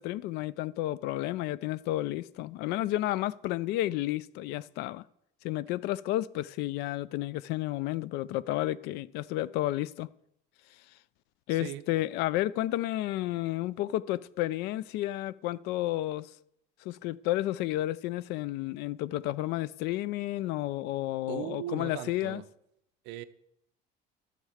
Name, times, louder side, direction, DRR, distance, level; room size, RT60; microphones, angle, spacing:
voice 1, 0.0-5.0 5.4-10.1 11.5-16.3 16.8-22.4, left 15 dB, 60° left, 0.4 m, -31 dB
voice 2, 11.5-11.8 21.3-22.4 23.0-23.2, right 12 dB, 65° right, 0.6 m, -38 dB
12.5 x 6.7 x 5.0 m
cardioid pair, 170°, 19 cm